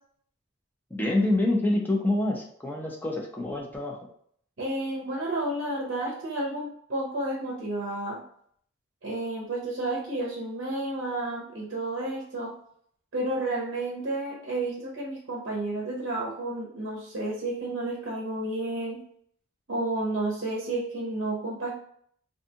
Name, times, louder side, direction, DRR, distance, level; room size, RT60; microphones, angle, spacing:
voice 1, 0.9-4.0, left 1 dB, 10° left, -1 dB, 0.4 m, -26 dB
voice 2, 4.6-8.2 9.0-12.5 13.1-19.0 19.7-21.7, right 2 dB, 60° right, -2 dB, 0.6 m, -31 dB
2.6 x 2.3 x 2.7 m, 0.64 s
head